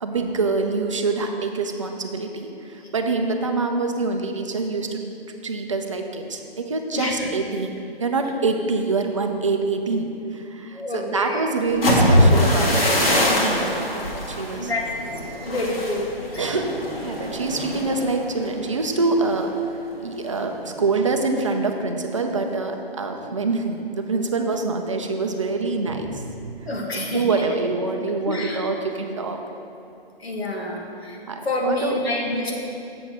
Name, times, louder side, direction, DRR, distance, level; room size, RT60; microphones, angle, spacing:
voice 1, 0.0-5.0 5.4-7.7 8.0-14.7 16.4-19.5 20.0-26.7 26.9-29.4 30.6-30.7 31.3-31.9, right 3 dB, 30° right, 4 dB, 0.5 m, -25 dB
voice 2, 6.9-7.3 10.7-11.4 13.3-13.7 14.6-14.9 15.4-16.1 16.3-16.5 26.7-27.2 28.3-28.6 30.2-31.2 31.5-32.5, left 1 dB, 80° left, -1 dB, 1.7 m, -27 dB
sound 1, 11.7-19.5 19.9-20.2 20.6-21.0, left 1 dB, 65° left, 1.9 m, -22 dB
7.1 x 4.6 x 6.6 m, 2.6 s
hypercardioid pair, 160°, 31 cm